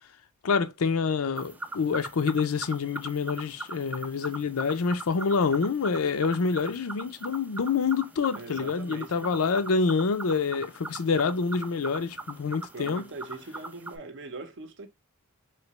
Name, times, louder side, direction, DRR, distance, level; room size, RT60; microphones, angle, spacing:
voice 1, 0.4-13.0, left 5 dB, 70° left, 0.5 m, -27 dB
sound 1, 1.4-14.0, right 2 dB, 5° right, 0.3 m, -41 dB
voice 2, 8.3-9.3 12.7-14.9, right 3 dB, 55° right, 0.7 m, -41 dB
3.2 x 2.8 x 2.9 m
head